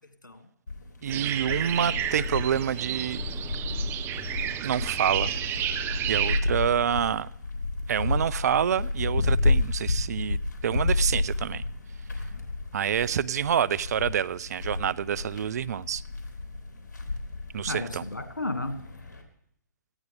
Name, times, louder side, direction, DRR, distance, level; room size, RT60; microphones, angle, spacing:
sound 1, 0.7-19.2, left 3 dB, 70° left, 3.6 m, -31 dB
voice 1, 1.0-3.2 4.6-5.3 6.1-7.3 7.9-11.6 12.7-16.0 17.5-18.0, right 9 dB, 60° right, 19 dB, 0.6 m, -27 dB
sound 2, 1.1-6.4, right 11 dB, 20° right, 0.9 m, -31 dB
voice 2, 2.9-3.8 17.7-18.9, left 2 dB, 85° left, 6 dB, 2.4 m, -35 dB
18.0 x 14.5 x 3.6 m, 0.71 s
figure-of-eight pair, 125°, 10 cm